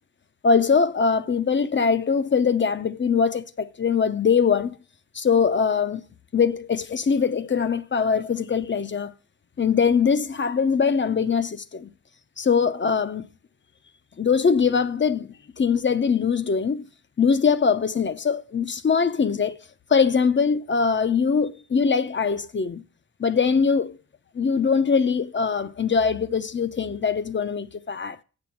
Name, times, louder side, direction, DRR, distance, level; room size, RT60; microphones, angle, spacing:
voice 1, 0.4-4.7 5.1-6.0 6.3-9.1 9.6-11.9 12.4-13.3 14.2-16.8 17.2-19.6 19.9-22.8 23.2-24.0 24.3-28.2, left 6 dB, 40° left, 0.6 m, -22 dB
7.9 x 6.9 x 7.2 m
wide cardioid pair, 150°, 30 cm